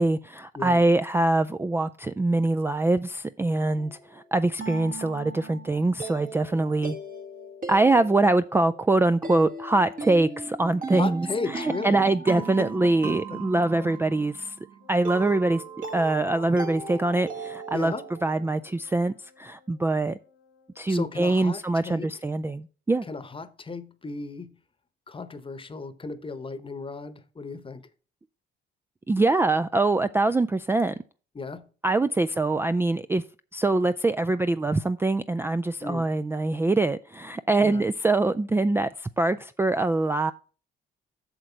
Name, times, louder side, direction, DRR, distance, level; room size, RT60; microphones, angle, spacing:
voice 1, 0.0-7.0 7.7-14.5 14.9-15.6 15.9-17.9 18.2-20.2 20.8-23.1 29.1-30.9 31.8-33.2 33.5-40.3, right 2 dB, 10° right, 0.3 m, -24 dB
sound 1, 3.8-18.5, right 4 dB, 45° right, 1.7 m, -38 dB
voice 2, 10.9-12.0 12.4-13.9 17.7-18.0 20.9-22.1 23.1-24.5 25.1-27.8 31.3-31.7 35.8-36.1 37.6-37.8, left 4 dB, 25° left, 1.0 m, -35 dB
Wind instrument woodwind instrument, 14.8-21.4, left 5 dB, 80° left, 1.0 m, -57 dB
8.1 x 6.5 x 4.5 m
cardioid pair, 90°, 20 cm